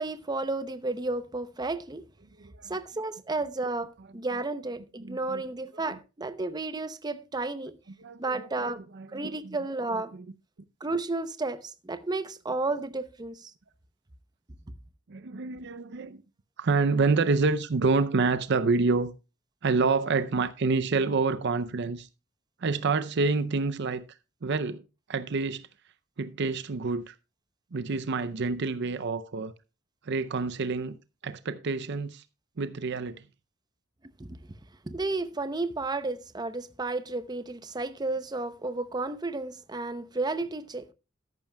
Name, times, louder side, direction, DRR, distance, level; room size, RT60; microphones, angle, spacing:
voice 1, 0.0-2.0 2.7-7.8 8.2-8.8 9.1-10.1 10.8-13.5 34.2-34.3 34.8-40.9, right 3 dB, 20° right, 0.7 m, -32 dB
voice 2, 5.0-5.4 5.7-6.0 8.0-9.6 9.9-10.3 15.1-16.2 16.6-19.1 19.6-22.1 22.6-24.0 24.4-24.8 25.1-25.7 26.2-27.1 27.7-29.5 30.0-31.0 31.2-32.2 32.6-33.3, right 4 dB, 60° right, 0.6 m, -28 dB
13.5 x 11.0 x 2.3 m
head